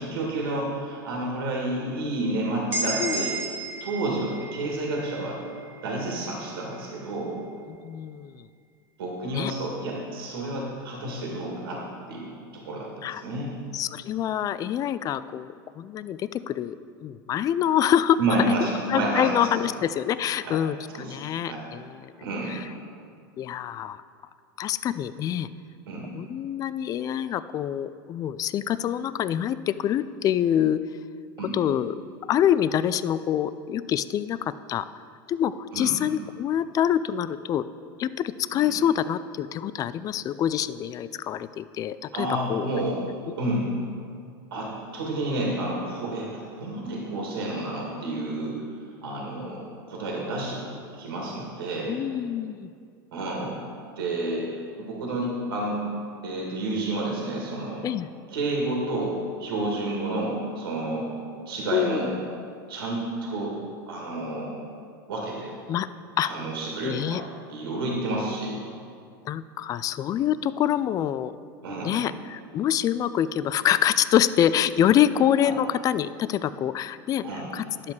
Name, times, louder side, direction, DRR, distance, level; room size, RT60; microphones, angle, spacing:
voice 1, 0.0-3.4 3.8-5.4 5.8-7.4 9.0-11.8 12.1-13.5 18.2-19.7 20.4-20.6 20.9-21.2 21.5-21.6 22.2-22.5 25.9-26.1 31.4-31.6 35.7-36.0 38.5-38.7 42.1-43.0 43.4-43.7 44.5-48.6 49.0-52.0 53.1-53.6 54.0-54.5 54.8-55.8 56.2-57.9 58.3-61.1 61.5-62.1 62.7-63.6 63.9-64.5 65.1-65.5 66.2-67.2 67.5-68.6 71.6-72.0 75.4-75.5 77.2-77.5, right 2 dB, 80° right, -2 dB, 2.0 m, -30 dB
sound 1, 2.7-6.5, right 2 dB, 15° right, 1.7 m, -33 dB
voice 2, 7.7-8.3 9.3-9.5 13.0-13.2 13.7-16.8 17.0-18.2 18.9-21.9 23.4-24.0 24.6-25.5 26.2-30.8 31.5-32.0 32.3-34.8 35.3-37.6 38.0-42.7 51.9-52.7 57.8-58.1 61.7-62.1 65.7-65.9 66.2-66.3 66.8-67.2 69.3-71.3 71.8-77.2 77.5-77.9, left 10 dB, 30° left, 15 dB, 0.3 m, -26 dB
10.5 x 7.4 x 4.7 m, 2.3 s
hypercardioid pair, 110°, 12 cm